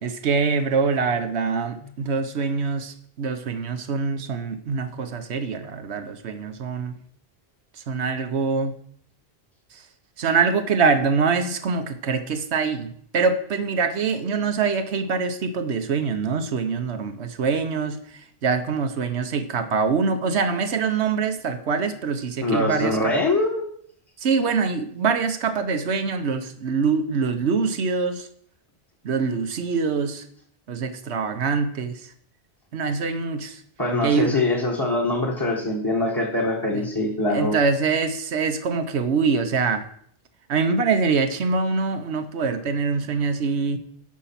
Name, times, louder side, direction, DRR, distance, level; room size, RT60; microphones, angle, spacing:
voice 1, 0.0-7.0 7.9-8.7 9.7-9.8 10.2-23.1 24.2-28.3 29.0-30.2 30.7-32.1 32.7-33.6 34.0-34.4 36.7-36.9 37.3-39.9 40.5-43.8, right 5 dB, 85° right, 8 dB, 1.2 m, -24 dB
voice 2, 22.4-23.6 33.8-37.6, left 2 dB, 20° left, -1 dB, 1.7 m, -23 dB
13.5 x 5.6 x 5.8 m, 0.65 s
omnidirectional pair, 1.1 m